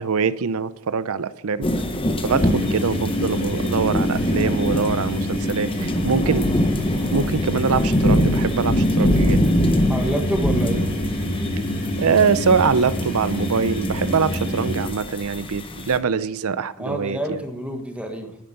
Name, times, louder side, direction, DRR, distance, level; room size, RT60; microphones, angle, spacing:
voice 1, 0.0-1.7 2.2-6.5 7.1-9.4 12.0-17.4, right 5 dB, 70° right, 16 dB, 0.6 m, -23 dB
sound 1, 1.6-16.0, left 1 dB, 25° left, 1.0 m, -24 dB
sound 2, 2.2-14.9, equal, 40° left, 4.9 m, -27 dB
voice 2, 9.9-10.9 16.8-18.4, right 1 dB, 5° right, 4 dB, 1.5 m, -28 dB
10.5 x 9.9 x 6.6 m, 0.81 s
head